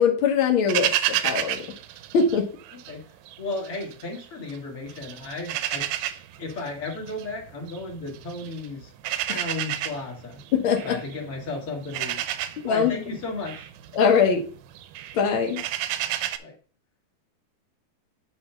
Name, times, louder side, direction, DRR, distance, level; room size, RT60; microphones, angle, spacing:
voice 1, 0.0-1.6 2.1-2.5 9.3-9.4 10.5-11.0 12.6-12.9 13.9-14.4 15.1-15.6, left 6 dB, 85° left, 1 dB, 1.1 m, -21 dB
sound 1, 0.7-2.9 3.3-4.6 4.9-16.4, right 12 dB, 80° right, 2.1 m, -31 dB
voice 2, 3.4-5.9 6.4-8.9 9.2-10.4 10.8-13.7 16.4-16.5, left 3 dB, 40° left, -2 dB, 2.7 m, -34 dB
9.5 x 3.4 x 5.7 m, 0.41 s
omnidirectional pair, 4.2 m